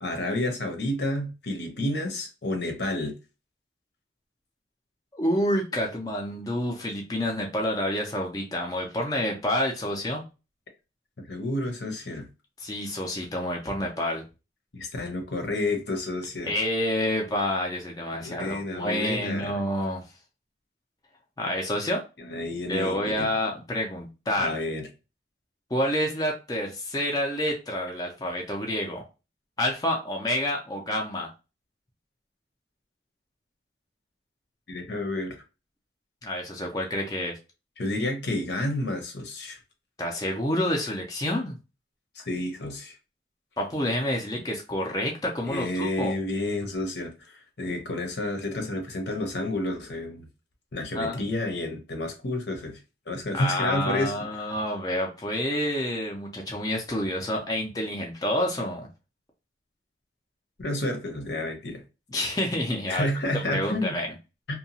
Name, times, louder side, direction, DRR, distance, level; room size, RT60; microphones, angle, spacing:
voice 1, 0.0-3.2 11.2-12.3 14.7-16.5 18.1-19.5 22.2-23.3 24.4-24.9 34.7-35.4 37.8-39.6 42.1-42.9 45.4-50.2 50.7-52.8 53.1-54.2 60.6-61.8 62.9-64.0, left 1 dB, 75° left, 0.8 m, -30 dB
voice 2, 5.1-10.2 12.6-14.2 16.4-20.0 21.4-22.0 22.7-24.6 25.7-29.0 29.6-31.3 36.2-37.4 40.0-41.6 43.6-46.1 50.9-51.2 53.3-58.9 62.1-63.1 63.3-64.1, left 1 dB, 20° left, 0.4 m, -28 dB
2.7 x 2.2 x 2.7 m
head